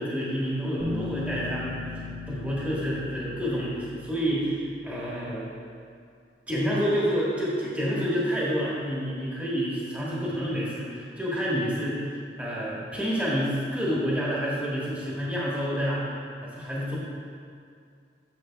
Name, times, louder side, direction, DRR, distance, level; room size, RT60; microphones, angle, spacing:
voice 1, 0.0-1.8 2.3-5.5 6.5-12.1 12.4-16.0 16.4-17.0, equal, 10° right, -7 dB, 1.4 m, -28 dB
Bass guitar, 0.8-4.5, left 3 dB, 25° right, 1.0 m, -37 dB
10.0 x 6.7 x 2.2 m, 2.3 s
head